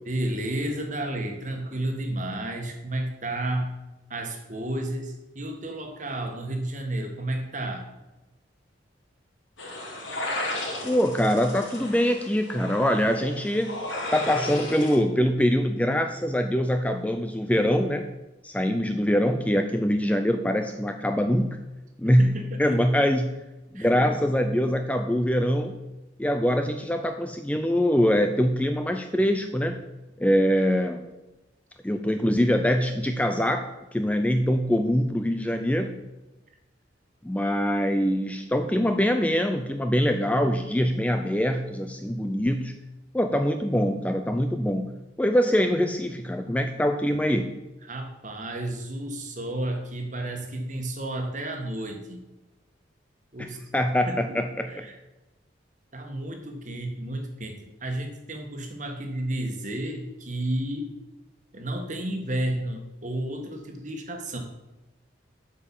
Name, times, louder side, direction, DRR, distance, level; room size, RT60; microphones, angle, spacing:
voice 1, 0.0-3.7 4.1-7.9 22.0-22.8 23.7-23.9 47.1-47.3 47.8-52.2 53.3-53.6 54.1-54.2 54.7-55.0 55.9-60.9 61.5-64.4, right 1 dB, 40° right, 3 dB, 1.5 m, -32 dB
sound 1, 9.6-14.9, left 1 dB, 80° left, 3.0 m, -34 dB
voice 2, 10.8-13.8 14.1-18.1 18.4-21.6 22.0-23.3 23.7-25.8 26.2-29.8 30.2-31.1 31.8-33.7 33.9-36.0 37.2-42.8 43.1-44.9 45.2-47.5 53.4-54.8, equal, 5° left, 6 dB, 0.4 m, -24 dB
8.3 x 5.3 x 7.3 m, 1.0 s
head